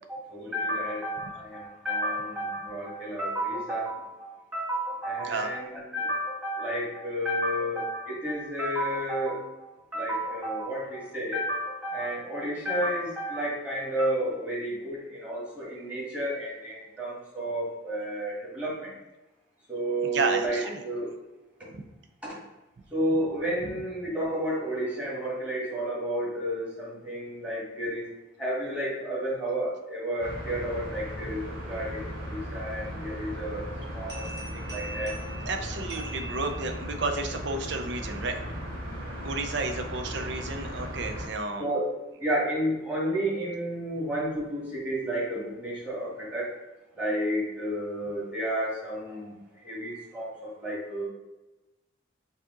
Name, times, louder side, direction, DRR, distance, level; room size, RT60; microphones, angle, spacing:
voice 1, 0.1-18.9 19.7-21.1 22.9-28.1 28.4-33.6 33.9-35.2 41.6-41.9 42.2-46.5 46.9-49.3 49.6-51.1, right 1 dB, 5° right, -7 dB, 1.6 m, -31 dB
voice 2, 20.0-20.8 21.7-21.8 34.4-34.5 35.4-38.4 39.2-41.7, right 3 dB, 60° right, 6 dB, 0.5 m, -32 dB
sound 1, 30.2-41.3, equal, 75° right, 1.5 m, -37 dB
sound 2, 34.1-37.0, right 2 dB, 25° right, 1.5 m, -43 dB
4.8 x 2.8 x 3.8 m, 1.0 s
head